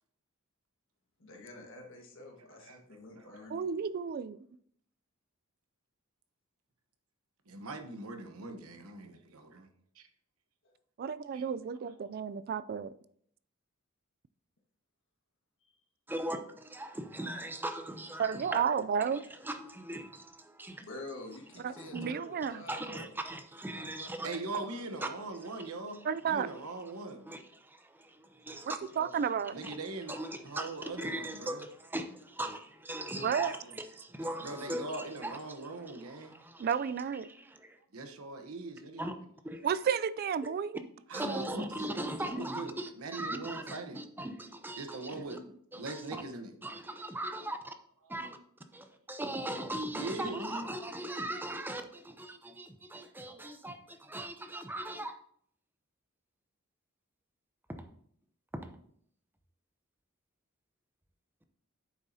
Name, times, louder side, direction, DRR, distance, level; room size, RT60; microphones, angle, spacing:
voice 1, 1.2-3.6 10.6-10.7 15.6-15.8 20.9-23.1 23.7-25.1 28.7-29.2 33.1-33.8, left 2 dB, 60° left, 1.5 m, -49 dB
voice 2, 2.5-2.8 3.2-3.4 7.5-9.7 9.9-10.1 11.3-11.4 24.2-27.3 29.5-30.2 30.4-31.6 34.4-36.3 37.9-39.1 41.1-44.0 44.8-46.5 48.0-48.1 49.9-50.7, right 2 dB, 75° right, 1.0 m, -41 dB
voice 3, 3.5-4.4 11.0-12.9 18.2-19.2 21.6-22.6 26.0-26.5 28.7-29.5 33.2-33.5 36.6-37.3 39.6-40.8 41.3-41.5, right 7 dB, 45° right, 0.3 m, -32 dB
voice 4, 16.1-18.7 19.1-20.8 21.8-22.1 22.7-24.3 25.0-25.1 25.6-25.7 27.2-28.8 29.6-29.8 30.1-36.7 37.2-37.8 39.0-39.1 39.4-39.7 41.1-45.4 45.7-46.2 46.6-47.6 48.1-48.4 48.7-55.2 57.7-57.9 58.5-58.8, right 1 dB, 10° right, 0.6 m, -39 dB
8.9 x 7.1 x 2.8 m
head